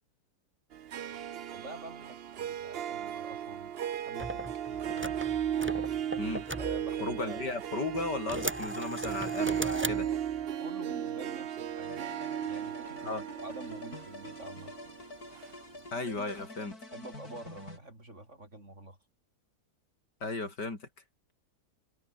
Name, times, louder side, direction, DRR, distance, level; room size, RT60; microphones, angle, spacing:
Harp, 0.7-16.1, right 10 dB, 60° right, 0.6 m, -36 dB
voice 1, 1.5-3.7 4.1-5.2 6.6-7.4 10.6-12.1 12.5-14.7 16.9-19.0, right 1 dB, 45° right, 6.8 m, -47 dB
sound 1, 4.2-7.5 7.9-10.5, right 1 dB, 5° right, 1.6 m, -38 dB
voice 2, 7.0-10.1 13.0-13.2 15.9-16.8 20.2-20.9, left 3 dB, 80° left, 5.6 m, -35 dB
sound 2, 11.8-17.8, left 2 dB, 60° left, 6.6 m, -47 dB
omnidirectional pair, 1.8 m